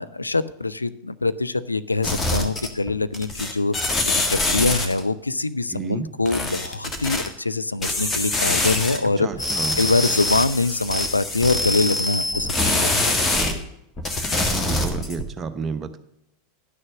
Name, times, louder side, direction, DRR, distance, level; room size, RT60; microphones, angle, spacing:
voice 1, 0.0-4.0 4.3-9.3 9.8-13.2, left 3 dB, 85° left, 14 dB, 0.4 m, -24 dB
sound 1, 2.0-2.9 3.1-5.0 6.3-7.3 7.8-9.0 9.3-13.5 14.0-15.2, left 2 dB, 20° left, 1.6 m, -24 dB
voice 2, 5.7-6.1 9.2-9.8 14.3-16.0, right 5 dB, 25° right, 8 dB, 1.0 m, -31 dB
11.0 x 6.6 x 6.1 m, 0.81 s
figure-of-eight pair, 85°, 0 cm